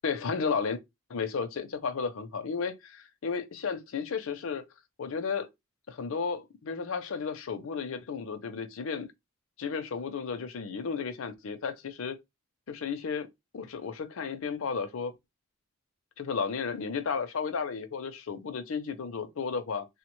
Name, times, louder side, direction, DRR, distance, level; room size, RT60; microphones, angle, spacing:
voice 1, 0.0-0.8 1.1-4.6 5.0-5.5 5.9-9.1 9.6-12.2 12.7-13.3 13.5-15.1 16.2-19.9, left 5 dB, 65° left, 0.5 m, -33 dB
3.1 x 2.1 x 3.0 m
head